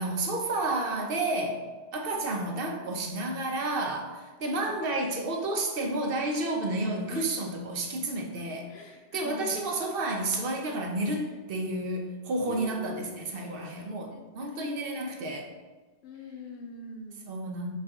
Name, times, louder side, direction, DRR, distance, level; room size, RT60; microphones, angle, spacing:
voice 1, 0.0-1.6 1.9-15.5 17.3-17.8, right 2 dB, 65° right, 2 dB, 0.9 m, -31 dB
voice 2, 6.8-7.3 8.7-9.6 11.2-11.3 12.5-15.3 16.0-17.2, left 4 dB, 90° left, 4 dB, 0.9 m, -45 dB
4.2 x 3.3 x 3.5 m, 1.3 s
omnidirectional pair, 1.0 m